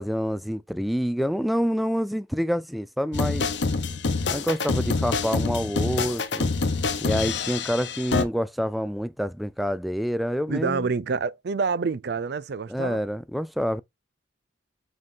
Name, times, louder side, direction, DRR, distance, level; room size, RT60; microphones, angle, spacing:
voice 1, 0.0-3.5 4.3-6.5 7.0-10.9 12.7-13.8, equal, ahead, 0.3 m, -27 dB
sound 1, 3.1-8.2, left 4 dB, 75° left, 0.9 m, -26 dB
voice 2, 10.5-13.0, right 4 dB, 65° right, 0.5 m, -27 dB
7.5 x 3.9 x 3.6 m
head